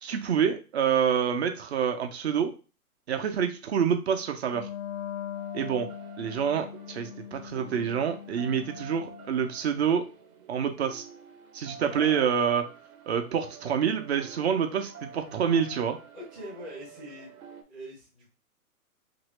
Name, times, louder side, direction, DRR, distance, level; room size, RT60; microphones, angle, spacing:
voice 1, 0.0-2.5 3.1-4.7 5.5-5.9 6.2-10.0 10.5-11.0 11.5-12.6 13.1-16.0, right 7 dB, 50° right, 6 dB, 0.6 m, -27 dB
Wind instrument woodwind instrument, 4.5-9.6, left 10 dB, 70° left, 0.5 m, -41 dB
sound 1, 5.3-17.6, right 5 dB, 75° right, 0.9 m, -48 dB
voice 2, 11.9-12.3 16.1-17.3 17.7-18.3, equal, ahead, -7 dB, 0.4 m, -42 dB
2.9 x 2.7 x 3.1 m, 0.34 s
hypercardioid pair, 135°, 44 cm